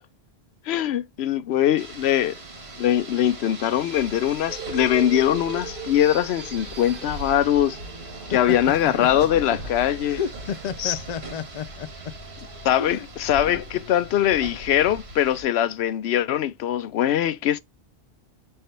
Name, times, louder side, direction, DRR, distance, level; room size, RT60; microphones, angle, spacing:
voice 1, 0.7-2.3 2.8-7.8 8.3-10.2 10.8-11.0 12.6-17.6, left 11 dB, 80° left, 0.8 m, -22 dB
Rain, 1.8-15.4, right 2 dB, 80° right, 1.8 m, -40 dB
sound 1, 4.5-12.7, right 3 dB, 60° right, 1.2 m, -40 dB
voice 2, 10.1-11.9 12.8-13.1, left 7 dB, 50° left, 0.5 m, -31 dB
5.6 x 3.4 x 2.6 m
omnidirectional pair, 1.1 m